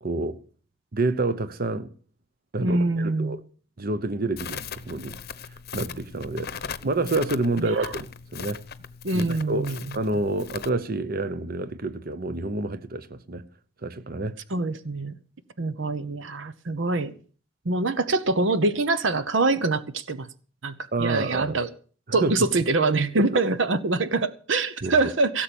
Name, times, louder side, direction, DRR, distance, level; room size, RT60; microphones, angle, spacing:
voice 1, 0.0-0.4 0.9-1.9 2.5-3.4 3.8-5.2 5.7-8.1 8.3-8.6 9.1-9.7 9.9-13.4 13.8-14.4 20.9-21.6 22.1-22.3 23.2-23.4 24.8-25.0, right 2 dB, 50° right, 0.9 m, -28 dB
voice 2, 2.6-3.4 7.6-7.9 9.0-9.9 14.5-15.2 15.6-17.1 17.6-20.3 20.6-21.7 22.1-25.4, right 3 dB, 75° right, 0.9 m, -25 dB
Crackle, 4.4-10.7, left 7 dB, 55° left, 0.8 m, -39 dB
17.5 x 7.5 x 7.0 m
head